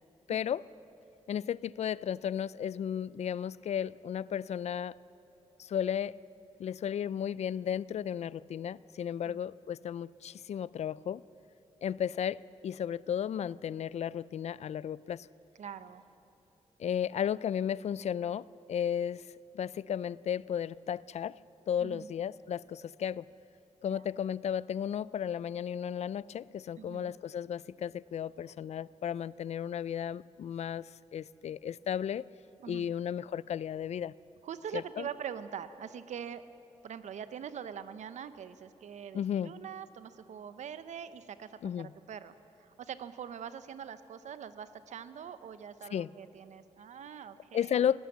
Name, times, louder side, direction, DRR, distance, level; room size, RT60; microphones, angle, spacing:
voice 1, 0.3-0.6 1.3-4.9 5.6-6.1 6.6-11.2 11.8-15.3 16.8-19.2 19.5-21.4 21.7-23.2 23.8-32.2 32.7-34.1 34.7-35.1 39.1-39.5 41.6-41.9 45.9-46.1 47.5-48.0, left 9 dB, 70° left, 20 dB, 0.4 m, -34 dB
voice 2, 15.6-16.0 21.8-22.1 23.9-24.0 26.8-27.1 32.6-32.9 34.4-36.4 36.8-42.3 42.6-47.8, right 8 dB, 85° right, 12 dB, 0.9 m, -43 dB
23.0 x 17.0 x 7.3 m, 3.0 s
cardioid pair, 80°, 12 cm